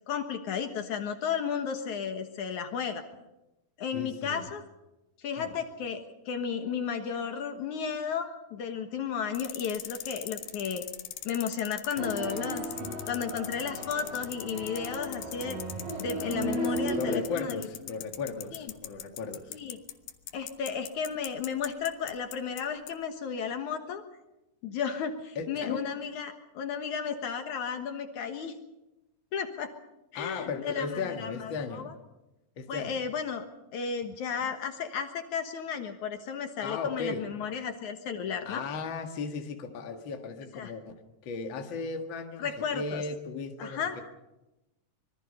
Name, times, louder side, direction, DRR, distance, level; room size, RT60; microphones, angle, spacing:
voice 1, 0.1-3.0 3.8-4.6 5.2-10.8 11.2-12.6 13.1-15.6 16.0-17.7 18.5-18.7 19.5-19.8 20.3-24.0 24.6-28.5 29.3-29.7 30.1-32.0 32.7-33.4 33.7-38.6 40.5-40.7 42.4-43.0 43.6-44.0, left 7 dB, 65° left, 2.6 m, -33 dB
voice 2, 3.9-4.5 5.4-5.6 17.0-19.6 25.4-25.9 30.1-31.9 32.6-33.0 36.6-37.3 38.5-40.9 41.2-44.0, left 4 dB, 40° left, 2.1 m, -36 dB
sound 1, 9.4-22.6 22.9-23.0, left 11 dB, 90° left, 2.9 m, -40 dB
sound 2, 12.0-17.2, right 1 dB, 85° right, 7.3 m, -35 dB
25.5 x 22.5 x 5.5 m
omnidirectional pair, 3.9 m